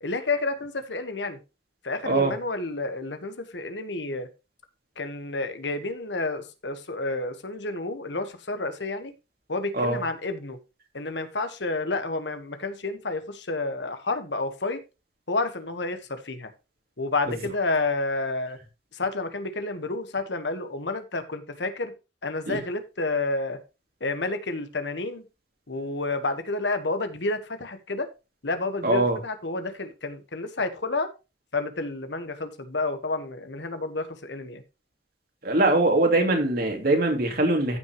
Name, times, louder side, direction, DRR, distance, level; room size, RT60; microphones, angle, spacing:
voice 1, 0.0-1.4 1.8-4.3 5.0-9.1 9.5-10.6 10.9-14.8 15.3-16.5 17.0-18.6 18.9-21.9 22.2-23.6 24.0-25.2 25.7-28.1 28.4-31.1 31.5-34.6, left 3 dB, 75° left, 1.4 m, -30 dB
voice 2, 28.8-29.2 35.4-37.8, right 2 dB, 55° right, 2.8 m, -22 dB
14.5 x 6.0 x 3.1 m
head